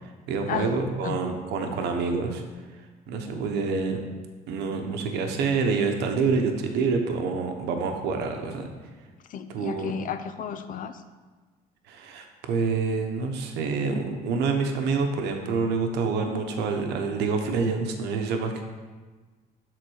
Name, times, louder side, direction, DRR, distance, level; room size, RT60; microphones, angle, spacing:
voice 1, 0.3-2.4 3.1-4.0 4.5-8.7 9.5-9.9 11.9-18.6, right 4 dB, 85° right, 4 dB, 1.0 m, -27 dB
voice 2, 9.3-10.9, left 8 dB, 50° left, 10 dB, 0.6 m, -33 dB
7.8 x 4.0 x 6.4 m, 1.4 s
cardioid pair, 110°, 17 cm